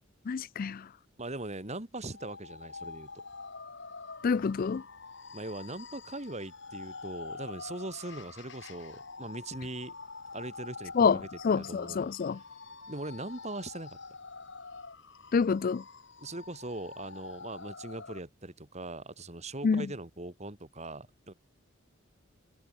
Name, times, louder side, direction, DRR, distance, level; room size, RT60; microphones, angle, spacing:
voice 1, 0.3-0.9 4.2-4.8 11.0-11.2 11.4-12.4 15.3-15.8 19.6-19.9, left 5 dB, 45° left, 0.4 m, -27 dB
voice 2, 1.2-3.1 5.3-9.9 10.3-12.1 12.9-14.0 16.2-21.3, right 2 dB, 35° right, 3.2 m, -40 dB
sound 1, 2.1-18.2, left 4 dB, 65° left, 3.2 m, -46 dB
head